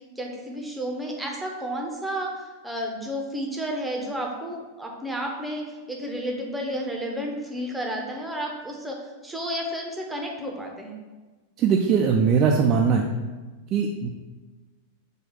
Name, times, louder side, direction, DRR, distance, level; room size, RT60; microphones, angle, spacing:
voice 1, 0.2-11.0, equal, 5° right, 0 dB, 0.8 m, -32 dB
voice 2, 11.6-13.1 13.7-14.1, right 6 dB, 35° right, 1 dB, 0.3 m, -20 dB
4.6 x 2.4 x 4.6 m, 1.3 s
figure-of-eight pair, 90°, 0 cm